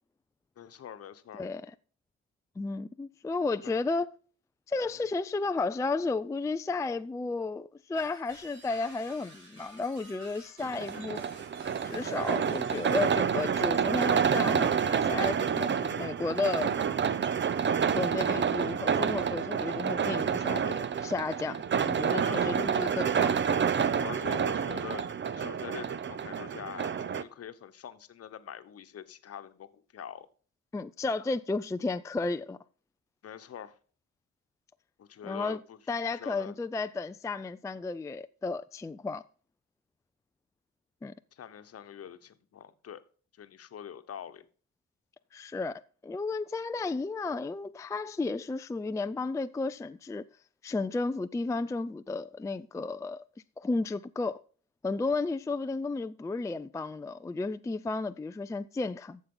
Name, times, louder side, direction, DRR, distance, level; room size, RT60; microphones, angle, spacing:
voice 1, 0.6-1.5 3.6-3.7 22.3-22.6 24.0-25.0 25.4-30.3 33.2-33.8 35.0-35.8 36.1-36.5 41.3-43.0 43.4-44.5, left 9 dB, 50° left, 1.1 m, -44 dB
voice 2, 1.3-1.7 2.6-4.1 4.7-11.2 11.8-16.7 17.9-21.6 21.9-23.3 30.7-32.6 35.2-35.6 35.9-39.2 41.0-41.1 45.3-50.3 50.6-53.2 53.6-54.4 54.8-59.2, left 3 dB, 10° left, 0.4 m, -33 dB
sound 1, 7.9-13.2, right 2 dB, 70° right, 5.5 m, -52 dB
sound 2, 10.6-27.2, right 7 dB, 40° right, 0.7 m, -28 dB
12.0 x 7.3 x 3.8 m
cardioid pair, 90°, 30 cm